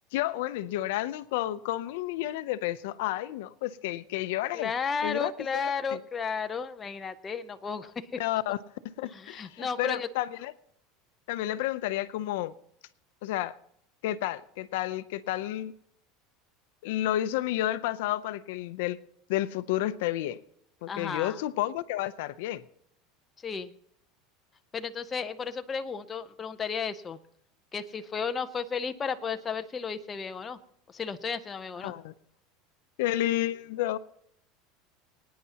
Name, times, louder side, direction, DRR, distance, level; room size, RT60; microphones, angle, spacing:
voice 1, 0.1-4.7 5.0-6.0 8.2-8.6 8.8-10.5 11.3-12.5 13.2-13.5 14.0-15.7 16.8-19.0 19.3-20.4 20.8-22.6 31.8-32.1 33.0-34.0, left 14 dB, 75° left, 0.5 m, -31 dB
voice 2, 4.5-8.2 9.1-10.1 20.9-21.4 23.4-23.7 24.7-27.2 27.7-30.6 30.9-31.9, left 6 dB, 20° left, 0.6 m, -33 dB
25.0 x 9.5 x 2.9 m
supercardioid pair, 155°, 0 cm